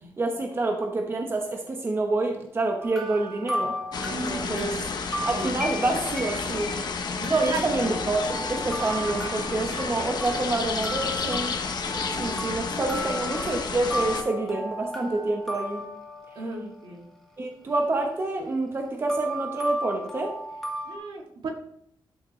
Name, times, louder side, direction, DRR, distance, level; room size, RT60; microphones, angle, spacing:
voice 1, 0.2-4.8 5.3-6.7 7.3-11.5 12.2-15.9 17.4-20.3, right 2 dB, 30° right, 3 dB, 0.9 m, -27 dB
sound 1, 2.8-16.6 19.1-21.0, equal, 5° left, 1.6 m, -35 dB
sound 2, 3.9-14.2, left 5 dB, 55° left, 0.9 m, -31 dB
voice 2, 4.1-4.8 5.3-5.7 7.2-8.0 16.4-17.1 20.9-21.5, right 2 dB, 75° right, -1 dB, 2.3 m, -36 dB
11.5 x 6.5 x 3.1 m, 0.70 s
wide cardioid pair, 160°, 8 cm